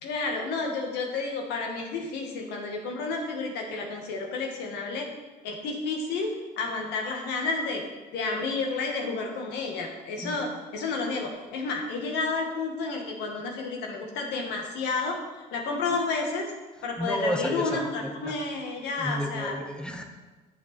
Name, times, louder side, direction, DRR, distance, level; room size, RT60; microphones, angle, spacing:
voice 1, 0.0-5.1 5.4-7.8 8.1-16.5 16.8-19.6, left 3 dB, 85° left, 1 dB, 1.8 m, -31 dB
voice 2, 17.0-18.4 19.0-20.0, equal, 5° left, 3 dB, 1.1 m, -32 dB
10.5 x 6.8 x 4.4 m, 1.2 s
cardioid pair, 110°, 17 cm